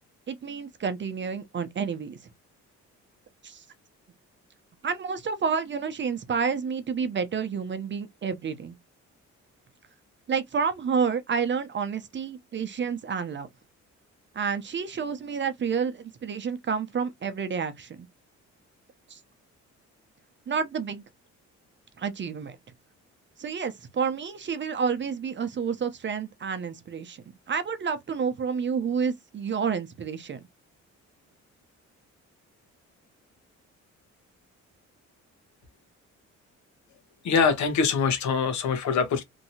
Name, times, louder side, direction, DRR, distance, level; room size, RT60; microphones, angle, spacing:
voice 1, 0.3-2.2 3.4-3.6 4.8-8.8 10.3-13.5 14.3-18.1 19.1-19.2 20.5-21.0 22.0-22.6 23.4-30.4, right 6 dB, 40° right, 0.7 m, -29 dB
voice 2, 37.2-39.2, left 5 dB, 70° left, 1.1 m, -24 dB
3.0 x 2.7 x 2.7 m
cardioid pair, 90°, 30 cm